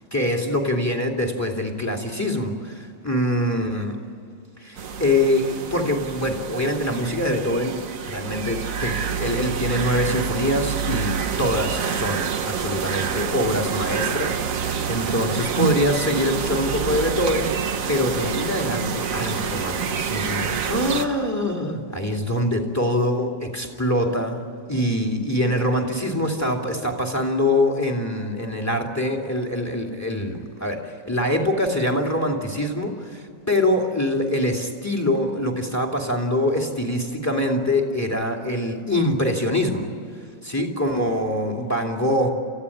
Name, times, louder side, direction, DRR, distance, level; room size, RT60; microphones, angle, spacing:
voice 1, 0.1-4.0 4.6-17.5 17.9-39.9 40.4-42.3, left 1 dB, 10° left, 2 dB, 2.5 m, -24 dB
sound 1, 4.8-21.1, right 7 dB, 50° right, 1.4 m, -27 dB
28.5 x 15.5 x 9.9 m, 2.6 s
omnidirectional pair, 1.9 m